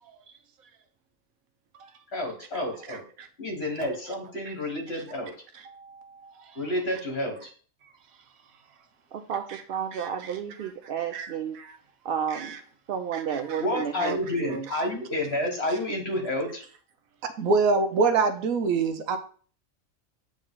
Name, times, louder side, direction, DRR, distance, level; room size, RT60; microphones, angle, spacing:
voice 1, 2.1-3.0 3.4-5.3 6.6-7.5 13.6-16.6, left 1 dB, 50° left, 1.9 m, -30 dB
voice 2, 2.9-3.3 4.5-4.6 5.6-6.3 9.5-9.6 9.9-10.7 11.1-11.8 12.3-12.6 13.1-13.6 14.0-14.1 17.2-19.2, right 4 dB, 80° right, 1.2 m, -27 dB
voice 3, 9.1-11.6 12.0-12.6 12.9-14.7, right 7 dB, 65° right, 0.5 m, -32 dB
8.4 x 3.1 x 3.7 m
omnidirectional pair, 1.4 m